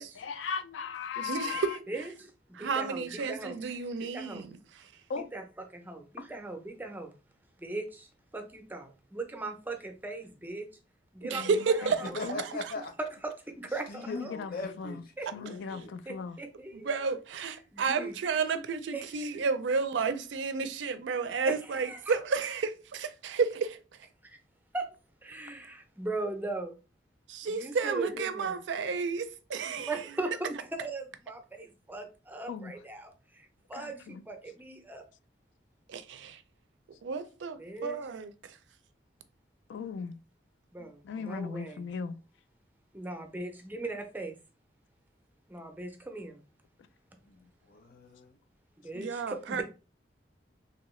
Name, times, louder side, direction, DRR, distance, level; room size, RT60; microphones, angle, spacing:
voice 1, 0.2-1.8 5.1-5.3 11.3-11.9 12.2-12.4 14.1-15.0 15.3-16.4 32.5-32.7 33.7-34.2 39.7-40.2 41.0-42.2, left 6 dB, 75° left, 0.3 m, -37 dB
voice 2, 1.2-1.8 2.5-4.9 11.3-12.0 16.8-23.8 27.3-29.9 35.9-36.4 37.0-38.6 48.9-49.6, right 5 dB, 80° right, 0.4 m, -31 dB
voice 3, 1.9-2.3 2.6-3.6 4.0-4.5 5.2-5.4 5.7-7.1 7.6-8.1 8.3-10.7 11.1-12.2 13.2-14.3 15.2-15.3 16.1-16.9 17.7-18.1 18.9-19.1 21.5-22.2 24.2-24.4 24.7-24.9 25.2-26.8 27.4-28.6 29.8-35.0 37.6-38.0 40.7-41.9 42.9-44.4 45.5-46.4 48.8-49.6, right 2 dB, 10° right, 0.5 m, -39 dB
voice 4, 12.1-12.9 13.9-16.0 47.2-48.4, left 2 dB, 55° left, 0.7 m, -40 dB
2.9 x 2.7 x 3.1 m
head